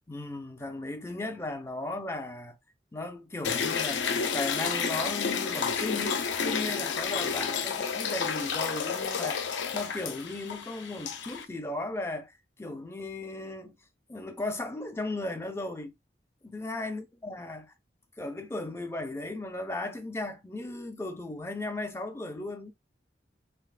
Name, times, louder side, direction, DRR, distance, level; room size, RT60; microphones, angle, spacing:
voice 1, 0.1-2.6 2.9-13.8 14.1-15.9 16.4-17.7 18.2-22.7, left 2 dB, 15° left, 0.4 m, -36 dB
sound 1, 3.4-11.4, left 6 dB, 90° left, 0.5 m, -31 dB
3.4 x 3.0 x 2.3 m
head